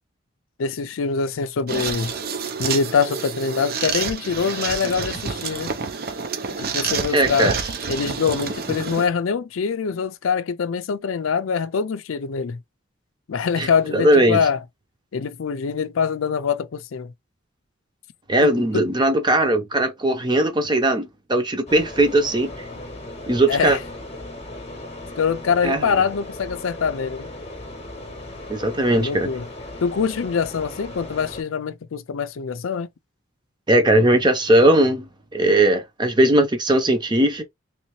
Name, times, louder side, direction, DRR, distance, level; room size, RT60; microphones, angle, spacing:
voice 1, 0.6-2.1 2.6-5.7 6.6-7.6 7.9-12.6 13.3-14.6 15.1-17.1 18.4-18.9 23.5-23.8 25.2-27.3 28.9-29.4 29.8-32.9, left 6 dB, 85° left, 0.5 m, -24 dB
sound 1, 1.7-9.1, right 5 dB, 50° right, 0.6 m, -28 dB
voice 2, 7.1-7.5 13.6-14.4 18.3-22.5 23.3-23.8 25.6-25.9 28.5-29.3 33.7-37.4, right 1 dB, 20° right, 0.8 m, -19 dB
sound 2, 21.7-31.4, left 1 dB, 30° left, 1.0 m, -37 dB
3.2 x 2.8 x 3.1 m
head